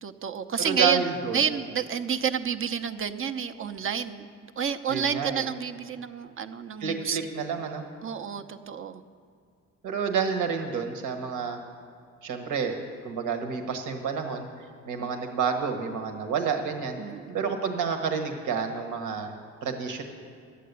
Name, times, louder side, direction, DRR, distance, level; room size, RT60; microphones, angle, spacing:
voice 1, 0.0-1.0 1.3-4.3 4.6-7.2 8.0-9.0 15.0-15.1 17.0-17.4, right 7 dB, 45° right, 9 dB, 0.7 m, -29 dB
voice 2, 0.6-1.4 4.9-5.4 6.8-7.8 9.8-11.6 12.2-12.8 13.0-14.5 14.9-17.0 17.3-19.3 19.6-20.0, right 6 dB, 85° right, 5 dB, 1.3 m, -29 dB
11.0 x 8.5 x 8.1 m, 2.3 s
cardioid pair, 90°, 30 cm